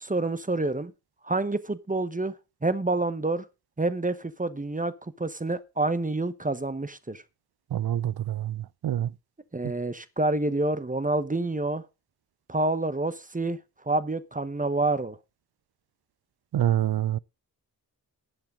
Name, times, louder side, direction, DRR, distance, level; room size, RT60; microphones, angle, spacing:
voice 1, 0.0-0.9 1.2-2.3 2.6-3.4 3.8-4.9 5.2-7.2 9.5-11.8 12.5-13.6 13.9-15.2, right 2 dB, 20° right, 1.0 m, -28 dB
voice 2, 7.7-8.5 8.8-9.1 16.5-17.2, right 11 dB, 75° right, 0.5 m, -26 dB
11.0 x 7.8 x 6.2 m
wide cardioid pair, 110°, 38 cm